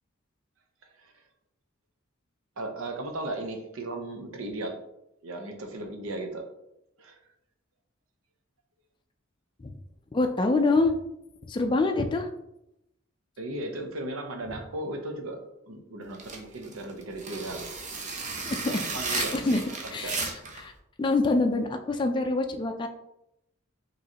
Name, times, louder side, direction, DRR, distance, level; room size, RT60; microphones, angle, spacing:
voice 1, 0.8-1.2 2.6-4.8 5.2-6.5 7.0-7.2 13.4-15.4 15.7-17.7 18.7-19.4 19.6-20.3, right 2 dB, 80° right, 4 dB, 0.8 m, -36 dB
voice 2, 10.1-10.9 11.5-12.3 18.4-18.8 19.1-19.6 19.9-20.3 20.6-20.7 21.0-22.9, left 3 dB, 25° left, 4 dB, 0.3 m, -25 dB
sound 1, 16.1-20.6, right 4 dB, 35° right, 0.7 m, -34 dB
5.0 x 3.1 x 2.8 m, 0.83 s
head